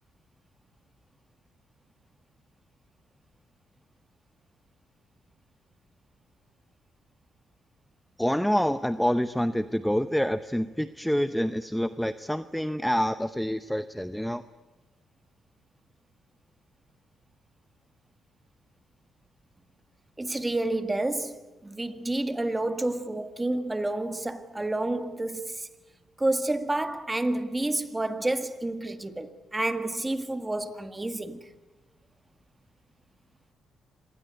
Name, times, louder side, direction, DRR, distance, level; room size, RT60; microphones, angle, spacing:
voice 1, 8.2-14.4, equal, ahead, 0.8 m, -27 dB
voice 2, 20.2-25.7 26.2-31.4, right 2 dB, 15° right, 1.8 m, -29 dB
26.0 x 19.5 x 9.5 m
cardioid pair, 90°, 0 cm